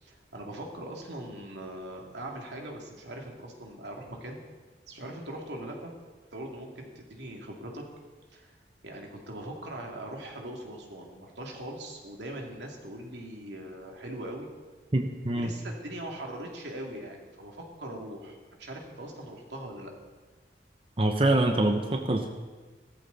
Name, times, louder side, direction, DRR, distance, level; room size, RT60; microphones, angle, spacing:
voice 1, 0.0-4.4 4.9-5.9 6.3-7.8 8.3-8.5 8.8-14.5 15.3-19.9, right 1 dB, 85° right, 0 dB, 2.7 m, -41 dB
voice 2, 14.9-15.5 21.0-22.3, right 1 dB, 30° right, 4 dB, 0.9 m, -25 dB
16.5 x 14.0 x 4.1 m, 1.4 s
head